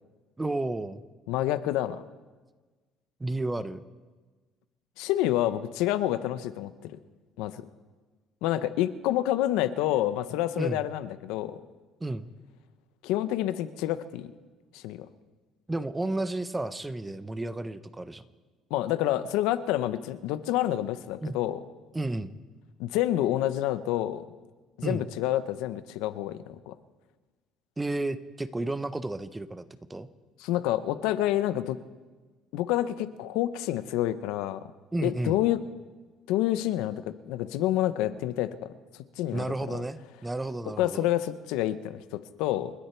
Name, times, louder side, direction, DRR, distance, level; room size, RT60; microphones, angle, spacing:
voice 1, 0.4-1.0 3.2-3.8 10.6-10.8 12.0-12.3 15.7-18.2 21.2-21.4 21.9-22.3 24.8-25.0 27.8-29.6 29.9-30.1 34.9-35.4 39.3-41.1, right 2 dB, 10° right, 13 dB, 0.7 m, -32 dB
voice 2, 1.3-2.0 5.0-7.0 7.4-7.6 8.4-11.6 13.0-14.3 14.7-15.1 18.7-21.6 22.8-24.2 24.8-26.7 30.4-31.8 32.5-34.6 35.0-35.6 36.3-38.7 39.2-39.8 40.8-42.7, left 13 dB, 90° left, 13 dB, 0.8 m, -28 dB
29.5 x 10.0 x 4.5 m, 1.3 s
cardioid pair, 125°, 0 cm